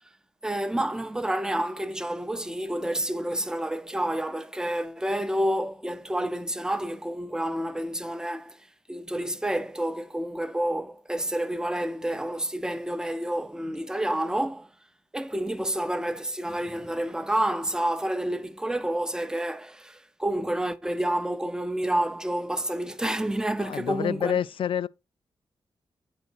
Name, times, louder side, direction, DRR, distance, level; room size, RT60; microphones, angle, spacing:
voice 1, 0.4-8.6 8.9-14.7 15.1-24.4, right 1 dB, 5° right, 0.7 m, -29 dB
voice 2, 23.6-24.9, left 9 dB, 70° left, 0.4 m, -28 dB
9.4 x 4.1 x 4.4 m
cardioid pair, 90°, 9 cm